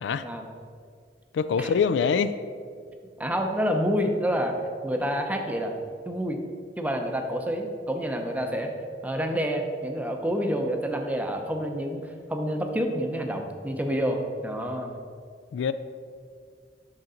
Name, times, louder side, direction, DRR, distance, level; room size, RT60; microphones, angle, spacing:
voice 1, 1.3-2.4 15.5-15.7, left 6 dB, 85° left, 13 dB, 0.3 m, -24 dB
voice 2, 3.2-4.5 4.8-5.8 6.1-6.4 6.8-8.7 9.0-15.0, equal, 10° right, 4 dB, 0.5 m, -28 dB
6.5 x 5.8 x 3.9 m, 2.1 s
head